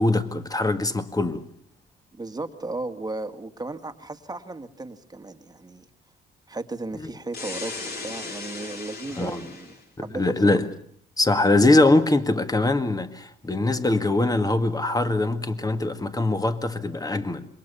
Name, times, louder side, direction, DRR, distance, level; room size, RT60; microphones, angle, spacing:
voice 1, 0.0-1.4 9.2-9.4 10.1-10.7 11.2-17.5, left 2 dB, 20° left, 1.9 m, -22 dB
voice 2, 2.1-5.9 6.5-10.5, right 2 dB, 20° right, 1.9 m, -35 dB
sound 1, 7.3-9.8, left 3 dB, 55° left, 4.7 m, -36 dB
26.5 x 22.5 x 7.0 m
cardioid pair, 90°, 20 cm